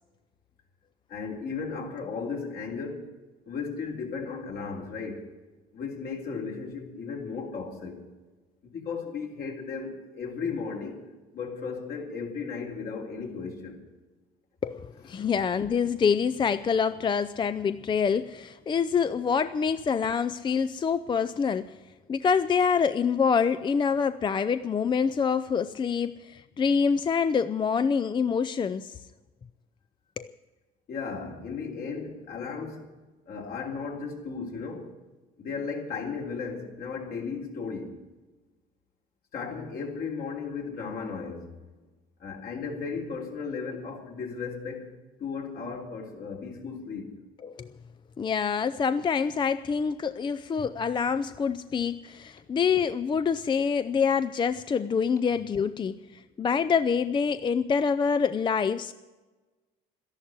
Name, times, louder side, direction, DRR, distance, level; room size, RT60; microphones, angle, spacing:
voice 1, 1.1-3.1 3.4-5.3 5.7-8.0 8.6-11.0 11.3-13.8 15.2-15.3 30.9-32.8 33.3-34.9 35.4-38.0 39.3-41.6 42.2-47.2, left 5 dB, 60° left, 3.6 m, -35 dB
voice 2, 14.6-21.8 22.1-29.0 30.2-30.3 47.4-47.7 48.2-58.9, left 6 dB, 30° left, 0.5 m, -26 dB
13.0 x 11.5 x 9.7 m
cardioid pair, 110°, 17 cm